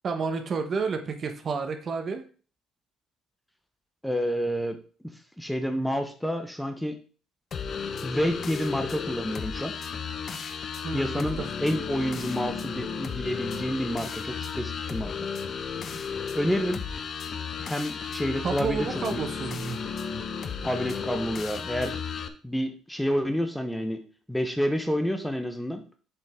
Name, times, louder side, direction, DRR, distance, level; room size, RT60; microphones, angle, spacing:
voice 1, 0.0-2.2 10.8-11.5 18.4-19.8, right 5 dB, 45° right, 6 dB, 1.1 m, -30 dB
voice 2, 4.0-4.8 5.4-7.0 8.0-9.7 10.9-15.1 16.3-16.8 17.6-19.2 20.6-22.0 22.4-24.0 24.3-25.8, equal, 5° left, 7 dB, 1.0 m, -29 dB
sound 1, 7.5-22.3, left 6 dB, 45° left, 0.8 m, -34 dB
7.5 x 5.2 x 3.7 m, 0.39 s
cardioid pair, 90°, 0 cm